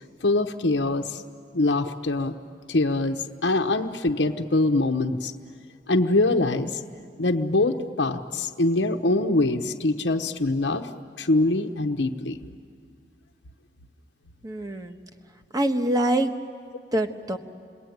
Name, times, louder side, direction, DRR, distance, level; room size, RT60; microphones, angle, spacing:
voice 1, 0.2-1.2 1.5-2.3 2.7-5.3 5.9-6.8 7.2-10.9 11.2-12.4, left 2 dB, 90° left, 4 dB, 1.0 m, -23 dB
voice 2, 14.4-15.0 15.5-16.3 16.9-17.4, right 1 dB, 20° right, 6 dB, 1.3 m, -24 dB
30.0 x 21.5 x 9.3 m, 2.2 s
head